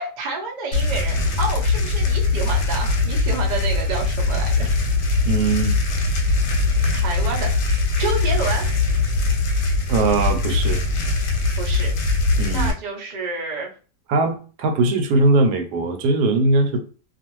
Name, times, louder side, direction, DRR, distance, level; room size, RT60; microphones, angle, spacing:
voice 1, 0.0-4.7 6.9-7.5 8.0-8.7 11.6-11.9 12.5-13.7, right 3 dB, 60° right, 0 dB, 0.4 m, -29 dB
sound 1, 0.7-12.7, left 3 dB, 85° left, 1.3 m, -21 dB
voice 2, 5.3-5.7 9.9-10.8 12.4-12.7 14.1-16.8, right 2 dB, 80° right, 6 dB, 1.1 m, -20 dB
2.6 x 2.4 x 2.9 m, 0.38 s
omnidirectional pair, 1.8 m